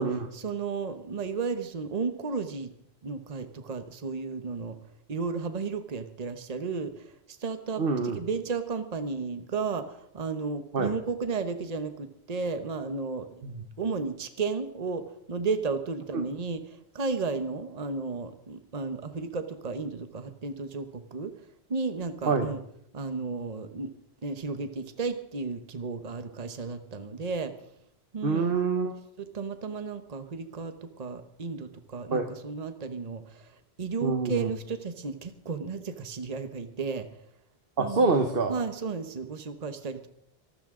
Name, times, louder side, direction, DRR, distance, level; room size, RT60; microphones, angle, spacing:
voice 1, 0.3-2.7 3.0-4.8 5.1-7.8 8.1-13.5 13.8-21.3 21.7-22.6 22.9-23.9 24.2-27.5 28.1-28.5 29.2-37.1 37.8-38.1 38.5-40.1, right 4 dB, 40° right, 9 dB, 1.1 m, -33 dB
voice 2, 7.8-8.2 10.7-10.9 13.4-13.5 22.2-22.5 28.2-29.0 32.1-32.3 34.0-34.5 37.8-38.5, right 4 dB, 65° right, 6 dB, 1.4 m, -26 dB
24.5 x 12.5 x 3.8 m, 0.74 s
omnidirectional pair, 1.0 m